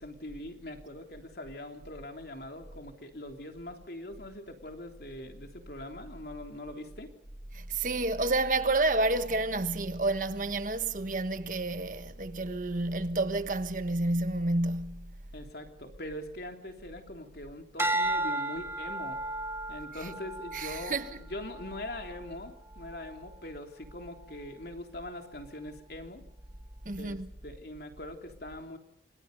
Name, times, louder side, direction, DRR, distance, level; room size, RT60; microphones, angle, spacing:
voice 1, 0.0-7.1 15.3-19.2 19.7-26.2 27.0-28.8, left 1 dB, 60° left, 3.4 m, -42 dB
voice 2, 7.5-15.1 19.9-20.1 20.5-21.2 26.8-27.3, right 2 dB, 45° right, 1.4 m, -30 dB
sound 1, 17.8-22.2 22.8-23.2, right 1 dB, 15° right, 1.7 m, -34 dB
29.0 x 26.0 x 5.4 m
head